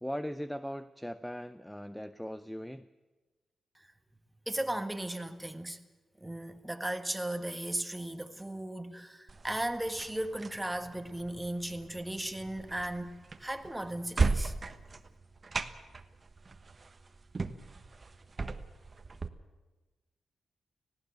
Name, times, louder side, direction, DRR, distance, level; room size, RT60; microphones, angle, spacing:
voice 1, 0.0-2.9, equal, 5° left, 0.6 m, -39 dB
voice 2, 4.5-5.8 6.2-13.1 13.4-14.5, right 1 dB, 10° right, 1.5 m, -36 dB
sound 1, 9.3-19.3, right 3 dB, 40° right, 1.2 m, -37 dB
19.0 x 16.0 x 8.9 m
cardioid pair, 65°, 0 cm